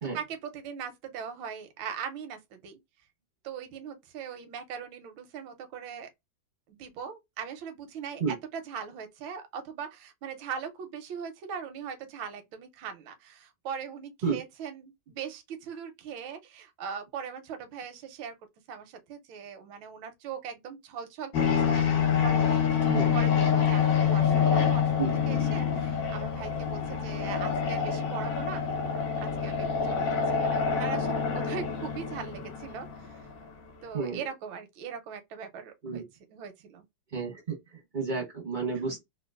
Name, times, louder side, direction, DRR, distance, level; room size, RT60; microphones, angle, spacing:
voice 1, 0.1-2.8 3.4-6.1 6.7-18.3 18.7-28.7 29.2-33.2 33.8-36.0 36.3-36.8, right 7 dB, 85° right, 1.4 m, -40 dB
sound 1, 21.3-33.4, left 7 dB, 65° left, 1.6 m, -26 dB
voice 2, 22.8-23.1 25.0-25.1 33.9-34.2 35.8-36.0 37.1-39.0, right 5 dB, 50° right, 0.6 m, -31 dB
3.8 x 2.2 x 2.3 m
omnidirectional pair, 2.1 m